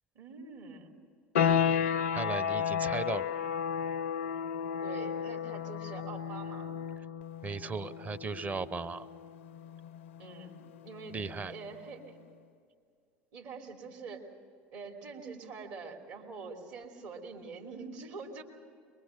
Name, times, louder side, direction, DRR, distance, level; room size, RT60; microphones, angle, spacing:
voice 1, 0.1-0.9 4.8-6.7 10.2-11.2 11.5-12.2 13.3-14.3 14.7-18.4, right 4 dB, 60° right, 2 dB, 3.1 m, -45 dB
sound 1, 1.3-11.9, left 8 dB, 80° left, 0.5 m, -33 dB
voice 2, 2.1-3.3 7.4-9.1 11.1-11.5, right 4 dB, 25° right, 13 dB, 0.8 m, -36 dB
23.0 x 22.5 x 6.6 m, 2.3 s
hypercardioid pair, 70°, 6 cm